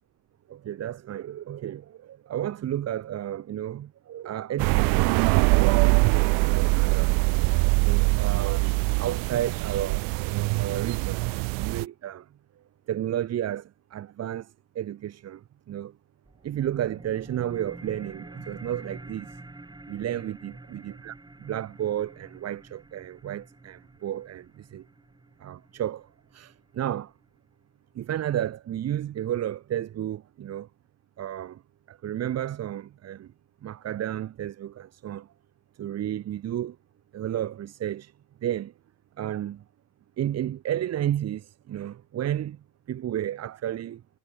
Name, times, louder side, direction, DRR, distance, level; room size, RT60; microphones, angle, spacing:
voice 1, 0.5-7.1 7.8-12.2 12.9-15.9 16.4-19.4 19.9-21.1 21.4-24.9 25.4-26.1 26.3-27.1 27.9-30.7 31.2-31.6 31.9-33.3 33.6-35.3 35.8-36.8 37.1-38.1 38.4-38.7 39.2-39.6 40.2-42.6 42.9-44.0, right 11 dB, 30° right, 1.2 m, -32 dB
sound 1, 4.6-11.8, right 32 dB, 45° right, 0.4 m, -23 dB
sound 2, 16.2-27.2, right 2 dB, 10° right, 5.0 m, -47 dB
hypercardioid pair, 95°, 48 cm